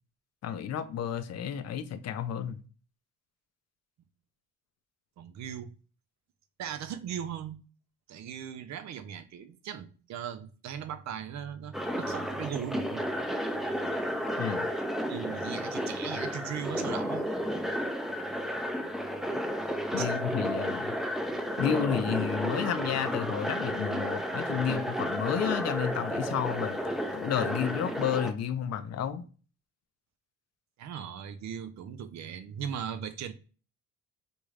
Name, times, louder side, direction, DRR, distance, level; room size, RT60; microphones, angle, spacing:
voice 1, 0.4-2.6 14.4-14.7 19.9-20.9 21.6-26.8 27.1-29.2, left 8 dB, 55° left, 0.5 m, -31 dB
voice 2, 5.2-5.7 6.6-7.6 8.1-13.1 15.1-17.2 20.0-20.1 30.8-33.3, right 8 dB, 65° right, 0.6 m, -38 dB
sound 1, 11.7-28.3, equal, ahead, 0.5 m, -32 dB
3.5 x 2.5 x 3.2 m
cardioid pair, 90°, 30 cm